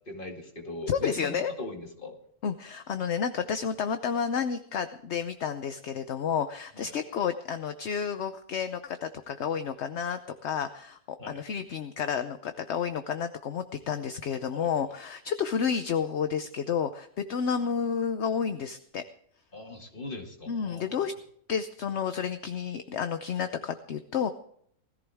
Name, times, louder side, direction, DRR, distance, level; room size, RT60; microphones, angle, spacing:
voice 1, 0.1-2.2 6.8-6.9 11.2-11.4 14.5-14.7 19.5-20.9, left 2 dB, 35° left, 2 dB, 2.4 m, -40 dB
voice 2, 0.9-1.5 2.4-19.0 20.5-21.1 21.5-24.3, left 7 dB, 55° left, 9 dB, 0.9 m, -31 dB
20.0 x 14.5 x 3.5 m, 0.65 s
omnidirectional pair, 1.6 m